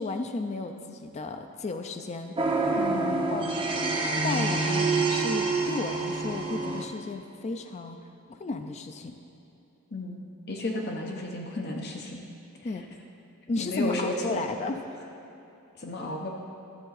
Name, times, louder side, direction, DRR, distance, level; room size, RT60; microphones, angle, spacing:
voice 1, 0.0-2.4 3.3-3.8 4.2-8.0 8.3-9.1 12.6-12.8 13.5-14.8, left 3 dB, 30° left, 6 dB, 0.4 m, -33 dB
sound 1, 2.4-6.8, right 3 dB, 25° right, 0.7 m, -27 dB
voice 2, 2.8-3.4 9.9-10.2 10.5-12.2 13.6-14.4 15.8-16.3, left 2 dB, 50° left, 1 dB, 0.8 m, -33 dB
12.0 x 7.5 x 4.1 m, 2.8 s
head